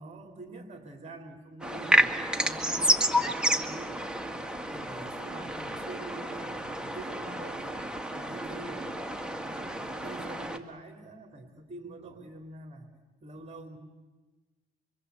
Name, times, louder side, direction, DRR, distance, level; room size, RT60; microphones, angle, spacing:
voice 1, 0.0-2.2 2.4-4.3 4.7-7.8 8.1-8.8 9.4-12.9 13.2-13.8, right 2 dB, 35° right, 4 dB, 3.3 m, -45 dB
sound 1, 1.6-10.6, equal, 5° right, 2.0 m, -30 dB
27.5 x 24.0 x 8.3 m, 1.2 s
cardioid pair, 90°, 20 cm